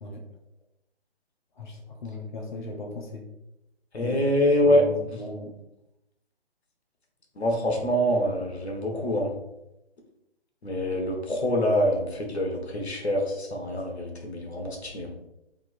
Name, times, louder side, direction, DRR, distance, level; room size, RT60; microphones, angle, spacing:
voice 1, 1.6-3.2 4.0-4.1 4.7-5.5, left 2 dB, 45° left, 1 dB, 0.8 m, -37 dB
voice 2, 3.9-5.2 7.4-9.3 10.6-15.1, equal, 75° left, 1 dB, 1.3 m, -25 dB
3.6 x 2.8 x 4.2 m, 0.90 s
figure-of-eight pair, 150°, 33 cm